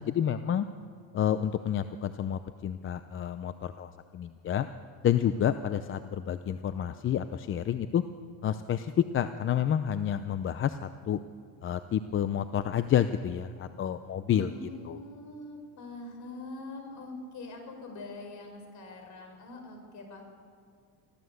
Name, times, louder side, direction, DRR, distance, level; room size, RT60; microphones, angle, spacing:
voice 1, 0.1-0.7 1.1-4.7 5.0-8.0 8.4-11.2 11.6-14.5 14.9-15.0, left 9 dB, 35° left, 11 dB, 0.7 m, -29 dB
voice 2, 14.3-20.2, left 2 dB, 50° left, 4 dB, 6.0 m, -43 dB
25.0 x 15.0 x 8.1 m, 2.2 s
cardioid pair, 130°, 37 cm